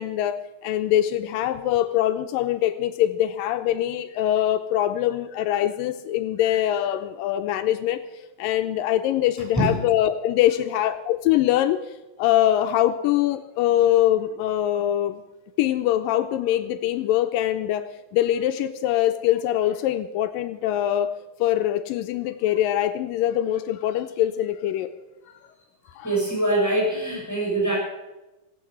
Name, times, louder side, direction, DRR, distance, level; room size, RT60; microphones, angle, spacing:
voice 1, 0.0-8.0 8.4-11.8 12.2-15.2 15.6-21.1 21.4-24.9 26.0-26.1, left 12 dB, 85° left, 10 dB, 2.3 m, -23 dB
voice 2, 26.0-27.8, right 1 dB, 5° left, -4 dB, 6.3 m, -23 dB
17.5 x 8.7 x 7.9 m, 1.0 s
omnidirectional pair, 4.0 m